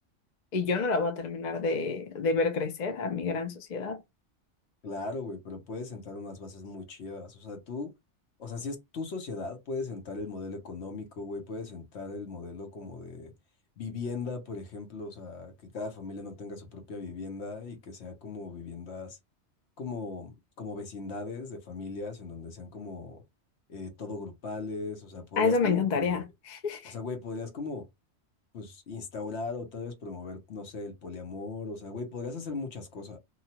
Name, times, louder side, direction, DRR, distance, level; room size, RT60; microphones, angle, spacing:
voice 1, 0.5-4.0 25.4-26.9, left 4 dB, 45° left, 0.6 m, -28 dB
voice 2, 4.8-7.9 8.4-13.3 13.8-19.2 19.8-23.2 23.7-26.3 26.8-27.9 28.5-33.2, left 3 dB, 70° left, 1.1 m, -38 dB
2.9 x 2.3 x 2.8 m
omnidirectional pair, 1.2 m